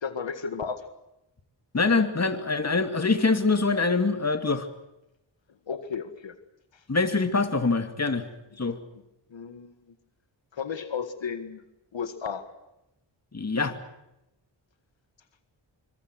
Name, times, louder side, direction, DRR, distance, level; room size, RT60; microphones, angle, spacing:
voice 1, 0.0-0.8 5.7-6.3 9.3-9.7 10.5-11.6 11.9-12.4, left 6 dB, 75° left, 10 dB, 2.0 m, -33 dB
voice 2, 1.7-4.7 6.9-8.3 8.6-8.8 13.3-13.8, left 3 dB, 35° left, 8 dB, 2.6 m, -24 dB
25.0 x 25.0 x 6.3 m, 0.90 s
wide cardioid pair, 95°, 45 cm